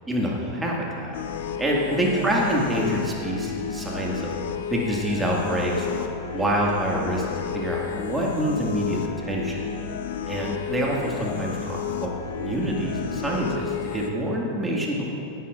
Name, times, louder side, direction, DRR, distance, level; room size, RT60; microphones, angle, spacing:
voice 1, 0.1-1.2 1.6-4.3 4.7-6.1 6.3-7.3 7.5-9.6 10.3-12.1 12.4-15.2, right 1 dB, 10° right, -3 dB, 2.1 m, -26 dB
sound 1, 1.1-14.1, left 8 dB, 60° left, 0.7 m, -32 dB
17.0 x 11.0 x 2.6 m, 2.6 s
figure-of-eight pair, 90°, 0 cm